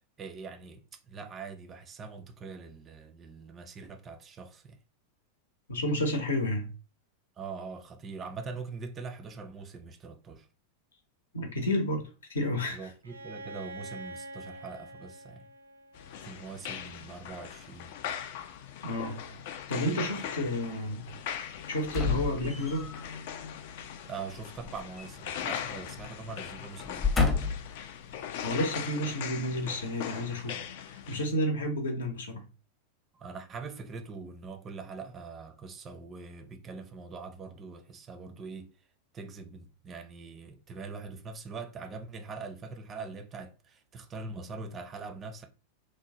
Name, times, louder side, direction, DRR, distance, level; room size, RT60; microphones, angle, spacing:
voice 1, 0.2-4.8 7.4-10.5 12.7-15.5 16.2-17.9 20.2-20.6 24.0-27.2 33.1-38.7 39.1-45.5, right 4 dB, 25° right, 0.5 m, -43 dB
voice 2, 5.7-6.7 11.3-12.9 18.8-21.1 21.7-22.9 28.4-32.4, left 1 dB, 65° left, 0.8 m, -31 dB
Bowed string instrument, 13.0-16.8, right 1 dB, 80° right, 0.5 m, -46 dB
sound 1, 15.9-31.3, left 9 dB, 50° left, 0.3 m, -40 dB
sound 2, 21.9-23.0 24.6-25.7 26.0-26.2 26.8-27.8 28.4-28.5, left 4 dB, 15° left, 0.7 m, -30 dB
3.1 x 2.1 x 2.7 m
figure-of-eight pair, 90°, 0 cm